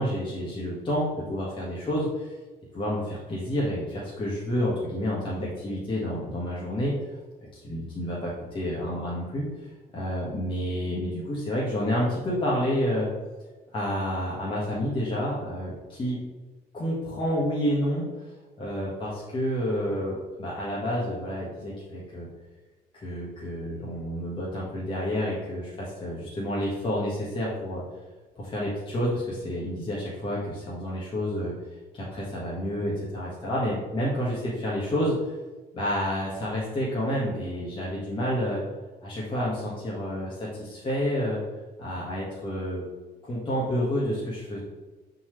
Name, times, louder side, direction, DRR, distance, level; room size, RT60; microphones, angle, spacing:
voice 1, 0.0-2.4 2.7-6.9 7.5-9.5 9.9-13.1 13.7-16.2 16.7-18.3 18.6-22.3 22.9-27.8 28.4-31.5 31.9-35.3 35.7-38.6 39.0-41.4 41.8-42.9 43.2-44.6, equal, 30° left, -6 dB, 1.7 m, -29 dB
8.3 x 4.1 x 3.2 m, 1.3 s
cardioid pair, 110°, 17 cm